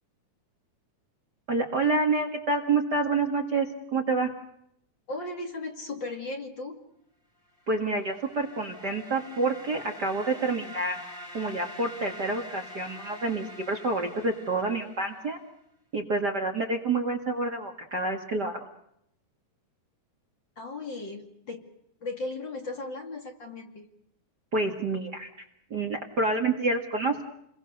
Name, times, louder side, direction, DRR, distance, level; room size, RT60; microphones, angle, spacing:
voice 1, 1.5-4.3 7.7-11.0 11.3-15.4 15.9-18.7 24.5-25.3 25.7-27.2, right 3 dB, 35° right, 3 dB, 2.1 m, -28 dB
voice 2, 5.1-6.8 20.6-21.6 22.0-23.9, left 2 dB, 40° left, 4 dB, 2.7 m, -36 dB
sound 1, 7.7-15.4, equal, 15° left, 2.5 m, -45 dB
29.5 x 22.5 x 6.7 m, 0.77 s
omnidirectional pair, 3.7 m